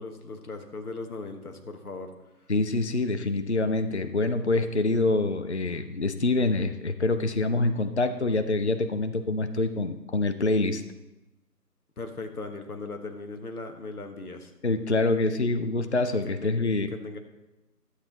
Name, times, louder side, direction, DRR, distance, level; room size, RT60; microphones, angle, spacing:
voice 1, 0.0-2.1 12.0-14.5 16.4-16.6 16.9-17.2, left 3 dB, 60° left, 5 dB, 1.4 m, -38 dB
voice 2, 2.5-10.8 14.6-16.9, left 2 dB, 45° left, 10 dB, 0.5 m, -26 dB
11.5 x 7.7 x 3.9 m, 1.0 s
figure-of-eight pair, 160°, 49 cm